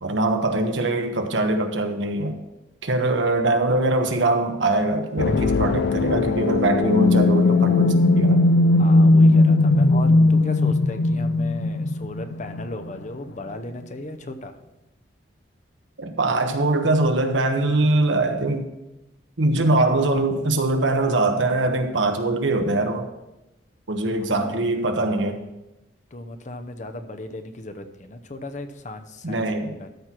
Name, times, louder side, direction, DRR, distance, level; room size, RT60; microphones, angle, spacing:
voice 1, 0.0-2.4 2.8-8.4 16.0-18.7 19.4-23.1 23.9-25.4 29.2-29.8, right 2 dB, 90° right, 5 dB, 1.2 m, -22 dB
sound 1, 5.2-12.9, left 2 dB, 65° left, 0.4 m, -18 dB
voice 2, 8.7-14.6 24.1-24.5 26.1-29.9, left 1 dB, 40° left, 7 dB, 0.8 m, -36 dB
13.0 x 4.6 x 6.0 m, 0.96 s
head